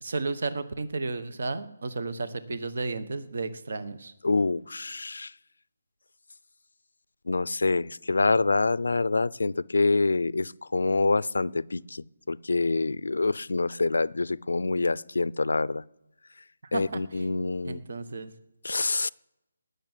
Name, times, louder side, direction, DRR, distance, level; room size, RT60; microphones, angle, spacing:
voice 1, 0.0-4.1 16.6-17.3 17.6-18.3, right 3 dB, 55° right, 1.2 m, -33 dB
voice 2, 4.2-5.3 7.3-15.8 16.7-17.8 18.6-19.1, left 3 dB, 85° left, 0.5 m, -26 dB
19.0 x 6.8 x 9.2 m
hypercardioid pair, 175°, 0 cm